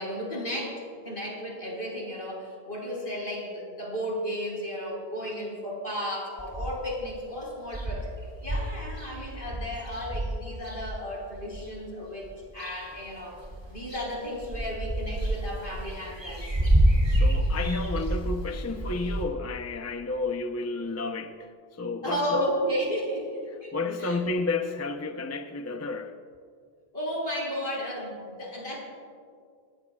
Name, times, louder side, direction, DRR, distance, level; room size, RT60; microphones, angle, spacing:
voice 1, 0.0-8.1 8.4-12.3 12.5-13.4 13.7-16.4 22.0-23.3 23.6-23.7 24.0-24.2 26.9-28.8, equal, 70° left, -3 dB, 5.2 m, -33 dB
sound 1, 6.4-7.0 7.3-7.4 7.7-11.7 12.2-13.1 13.4-19.2, right 1 dB, 25° right, 2.7 m, -28 dB
voice 2, 17.1-22.4 23.5-26.2, left 3 dB, 20° left, 6 dB, 0.6 m, -31 dB
27.0 x 19.5 x 2.4 m, 2.2 s
omnidirectional pair, 1.0 m